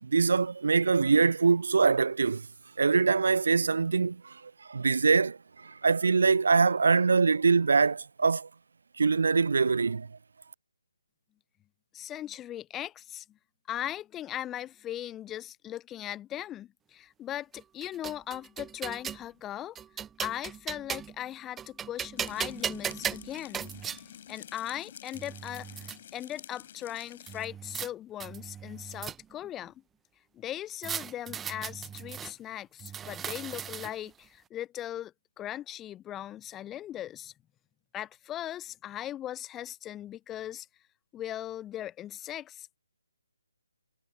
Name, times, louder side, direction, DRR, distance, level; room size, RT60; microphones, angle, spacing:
voice 1, 0.0-2.5 2.8-8.5 9.0-10.1, right 4 dB, 55° right, 0.7 m, -24 dB
voice 2, 11.9-13.4 13.7-19.8 20.2-23.7 24.3-25.7 26.1-29.7 30.3-37.3 37.9-40.7 41.1-42.8, left 12 dB, 10° left, 0.9 m, -39 dB
sound 1, 17.5-19.2 19.8-21.2 21.6-24.0 24.8-24.9 25.1-26.0 27.3-27.9 28.2-29.5 30.8-32.3 32.8-34.1, right 8 dB, 10° right, 1.3 m, -37 dB
sound 2, 22.2-27.4, left 9 dB, 35° left, 5.3 m, -49 dB
figure-of-eight pair, 140°, 0 cm